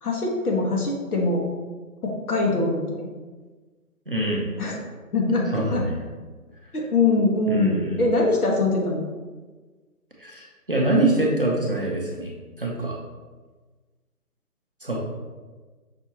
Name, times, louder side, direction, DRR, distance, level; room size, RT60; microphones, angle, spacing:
voice 1, 0.0-1.4 2.0-3.1 4.6-4.8 5.1-5.8 6.7-9.0, left 3 dB, 75° left, -1 dB, 1.3 m, -23 dB
voice 2, 4.1-4.5 5.5-5.9 7.5-8.0 10.2-12.3 12.6-13.0 14.8-15.0, right 2 dB, 40° right, -2 dB, 0.5 m, -24 dB
5.6 x 2.7 x 2.8 m, 1.3 s
hypercardioid pair, 165°, 45 cm